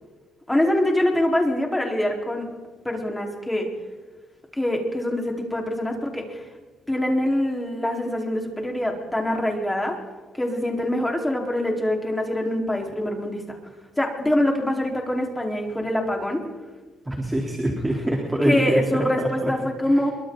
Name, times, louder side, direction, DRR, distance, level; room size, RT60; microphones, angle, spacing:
voice 1, 0.5-2.5 2.8-3.7 4.5-6.4 6.9-10.0 10.4-13.6 14.0-16.4 18.4-20.1, left 1 dB, 10° left, 1 dB, 4.6 m, -24 dB
voice 2, 17.0-18.8 19.2-19.5 19.9-20.0, right 1 dB, 15° right, 0 dB, 3.9 m, -25 dB
26.0 x 24.0 x 4.1 m, 1.3 s
cardioid pair, 90°, 0 cm